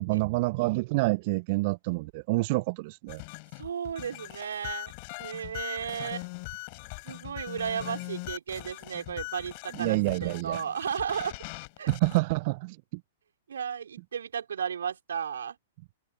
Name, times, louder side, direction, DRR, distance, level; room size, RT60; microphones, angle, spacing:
voice 1, 0.0-3.2 9.7-10.6 11.9-13.0, right 24 dB, 45° right, 1.0 m, -28 dB
sound 1, 3.1-12.2, left 31 dB, 45° left, 4.9 m, -41 dB
voice 2, 3.6-4.9 5.2-6.3 7.0-11.4 11.8-11.9 13.5-15.5, right 7 dB, 70° right, 5.0 m, -34 dB
figure-of-eight pair, 110°, 0 cm